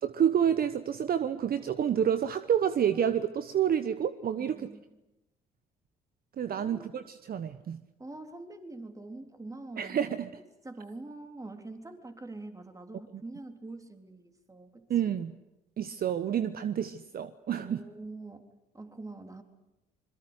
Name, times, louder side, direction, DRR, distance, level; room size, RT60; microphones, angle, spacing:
voice 1, 0.0-4.7 6.4-7.8 9.8-10.3 14.9-15.3 15.8-17.8, right 9 dB, 50° right, 12 dB, 1.1 m, -29 dB
voice 2, 4.4-4.8 6.5-7.0 8.0-10.0 10.6-14.9 17.5-19.4, right 2 dB, 15° right, 6 dB, 3.7 m, -45 dB
26.0 x 22.0 x 8.2 m, 0.95 s
hypercardioid pair, 55°, 20 cm